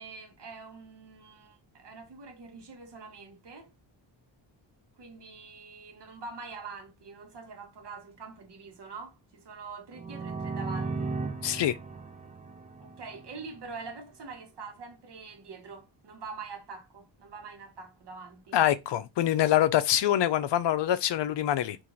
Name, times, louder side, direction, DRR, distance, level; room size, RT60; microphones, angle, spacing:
voice 1, 0.0-3.7 5.0-11.2 12.8-18.6, right 4 dB, 60° right, 1.1 m, -45 dB
Dub Sample, 9.9-13.6, right 4 dB, 15° right, 0.5 m, -36 dB
voice 2, 11.4-11.7 18.5-21.8, left 12 dB, 65° left, 0.5 m, -25 dB
2.9 x 2.6 x 3.8 m
cardioid pair, 105°, 47 cm